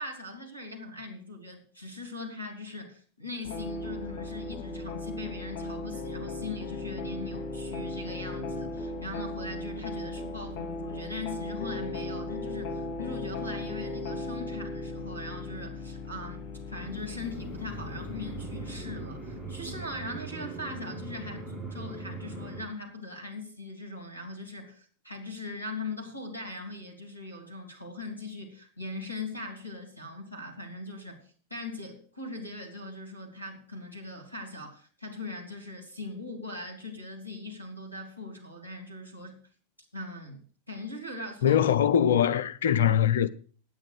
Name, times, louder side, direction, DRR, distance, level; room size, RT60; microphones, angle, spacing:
voice 1, 0.0-31.2 31.5-39.4 39.9-40.4 40.7-41.6, left 2 dB, 90° right, 2.9 m, -40 dB
sound 1, 3.4-20.2, left 2 dB, 40° left, 2.6 m, -37 dB
sound 2, 16.7-22.7, right 3 dB, 5° right, 1.9 m, -40 dB
voice 2, 41.4-43.3, left 9 dB, 60° left, 0.7 m, -22 dB
9.1 x 9.0 x 6.5 m
figure-of-eight pair, 90°, 0 cm